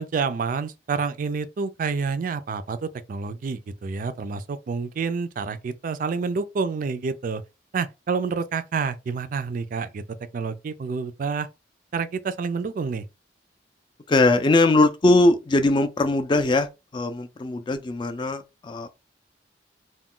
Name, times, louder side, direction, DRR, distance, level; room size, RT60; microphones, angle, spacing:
voice 1, 0.0-7.4 7.7-10.0 10.3-11.5 11.9-13.0, right 5 dB, 45° right, 0.3 m, -28 dB
voice 2, 14.1-18.9, left 2 dB, 25° left, 0.4 m, -21 dB
2.3 x 2.2 x 3.6 m
head